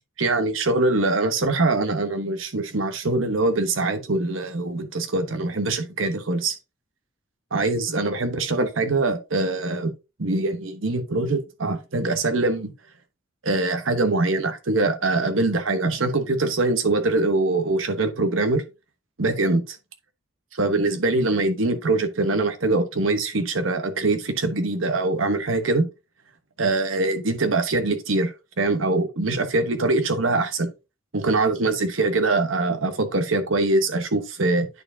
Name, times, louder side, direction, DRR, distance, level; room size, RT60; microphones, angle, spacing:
voice 1, 0.2-6.5 7.5-9.9 10.2-12.7 13.4-18.6 19.2-19.8 20.5-25.9 26.6-30.7 31.1-34.7, right 2 dB, 75° right, 1.1 m, -23 dB
9.7 x 4.4 x 2.7 m
head